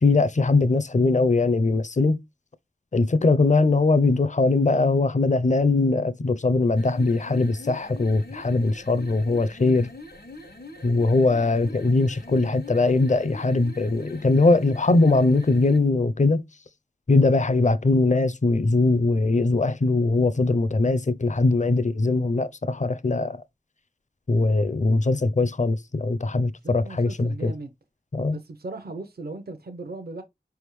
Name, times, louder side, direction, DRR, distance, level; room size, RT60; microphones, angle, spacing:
voice 1, 0.0-2.2 2.9-9.9 10.8-16.4 17.1-23.4 24.3-27.5 28.1-28.4, left 3 dB, 45° left, 0.5 m, -21 dB
sound 1, 6.7-15.9, left 2 dB, 80° left, 1.3 m, -43 dB
voice 2, 26.6-27.7 28.3-30.2, right 2 dB, 70° right, 0.7 m, -37 dB
4.8 x 3.5 x 3.0 m
wide cardioid pair, 45°, 17 cm